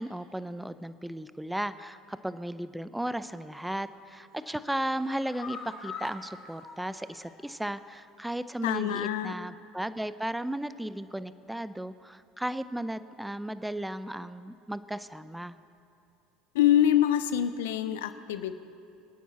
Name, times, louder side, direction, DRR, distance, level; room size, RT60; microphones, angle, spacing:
voice 1, 0.0-15.6, right 1 dB, 5° right, 13 dB, 0.6 m, -35 dB
sound 1, 3.5-3.9 4.3-7.7 8.0-8.1 8.5-8.6, left 5 dB, 55° left, 4.4 m, -45 dB
voice 2, 8.6-9.3 16.5-18.5, left 11 dB, 85° left, 12 dB, 0.7 m, -25 dB
26.5 x 9.3 x 4.3 m, 2.6 s
hypercardioid pair, 85°, 0 cm